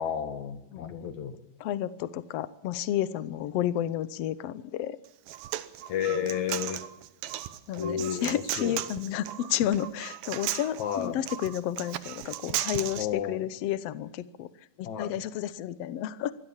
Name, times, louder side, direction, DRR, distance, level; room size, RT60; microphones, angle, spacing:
voice 1, 0.0-1.4 5.9-6.8 7.8-8.8 10.8-11.2 13.0-13.5 14.8-15.1, left 8 dB, 60° left, 8 dB, 2.9 m, -32 dB
voice 2, 0.7-1.0 1.6-5.0 6.1-6.2 6.6-6.7 7.7-14.5 14.8-16.3, left 11 dB, 90° left, 14 dB, 1.4 m, -31 dB
Human voice, 5.1-13.0, right 13 dB, 80° right, 2.7 m, -36 dB
24.0 x 17.5 x 7.3 m, 0.94 s
omnidirectional pair, 4.1 m